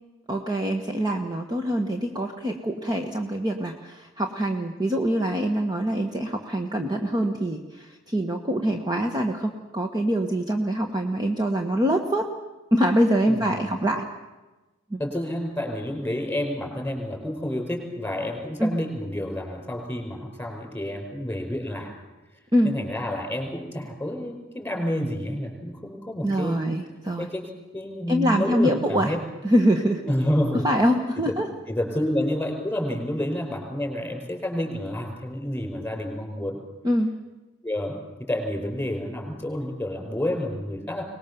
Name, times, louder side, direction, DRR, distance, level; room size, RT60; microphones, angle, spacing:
voice 1, 0.3-12.3 12.7-14.0 14.9-15.0 18.6-18.7 22.5-22.7 26.2-27.3 28.1-29.1 29.4-30.0 30.6-31.5 36.8-37.2, equal, 20° right, 4 dB, 1.3 m, -24 dB
voice 2, 13.2-13.8 15.0-21.9 22.6-26.7 27.2-29.2 30.0-30.6 31.3-31.4 31.7-36.6 37.6-38.0 38.3-41.0, left 1 dB, 10° left, 2 dB, 5.2 m, -29 dB
23.5 x 20.0 x 6.9 m, 1.2 s
head